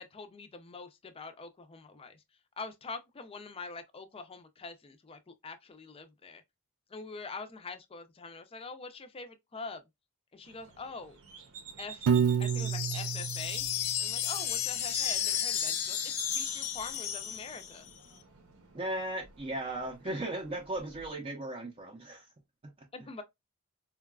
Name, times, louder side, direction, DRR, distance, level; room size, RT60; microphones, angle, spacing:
voice 1, 0.0-2.2 2.6-6.4 6.9-9.8 10.3-11.2 11.8-12.1 12.4-13.7 14.0-17.9 20.0-20.1 22.9-23.2, left 4 dB, 25° left, 0.4 m, -44 dB
sound 1, 10.4-21.1, right 6 dB, 70° right, 0.8 m, -53 dB
Piano, 12.1-14.3, right 7 dB, 85° right, 0.3 m, -29 dB
sound 2, 12.4-17.9, left 9 dB, 75° left, 0.5 m, -33 dB
voice 2, 18.7-22.3 22.6-22.7, right 1 dB, 25° right, 0.5 m, -36 dB
3.8 x 2.3 x 2.2 m
head